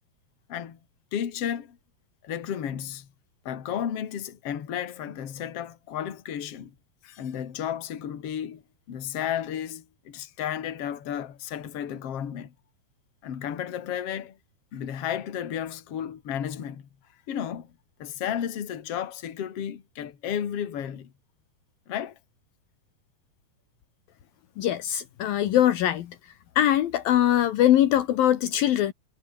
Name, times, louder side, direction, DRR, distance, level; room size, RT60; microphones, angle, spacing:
voice 1, 0.5-0.8 1.1-1.8 2.2-3.1 3.4-6.7 7.0-8.6 8.9-12.5 13.2-14.4 14.7-16.9 17.3-17.7 18.0-21.1 21.9-22.2, left 9 dB, 45° left, 2.7 m, -33 dB
voice 2, 24.6-26.1 26.6-28.9, left 12 dB, 70° left, 2.9 m, -22 dB
omnidirectional pair, 4.5 m